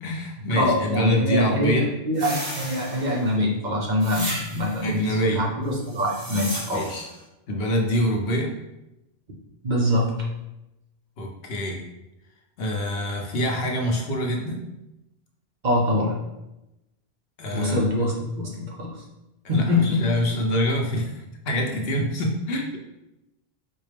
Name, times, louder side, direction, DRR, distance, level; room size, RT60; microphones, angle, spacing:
voice 1, 0.0-1.9 4.8-5.4 6.7-7.1 7.5-8.5 11.2-11.8 12.6-14.6 17.4-17.8 19.4-22.8, equal, 75° left, 1 dB, 0.9 m, -25 dB
voice 2, 0.5-5.0 5.4-6.9 9.6-10.2 15.6-16.2 17.5-18.9 19.5-20.0, left 1 dB, 50° right, -2 dB, 0.8 m, -24 dB
sound 1, 2.1-3.3 4.0-4.9 5.8-7.1, right 1 dB, 35° right, 1.3 m, -34 dB
4.3 x 2.1 x 3.3 m, 0.93 s
omnidirectional pair, 1.0 m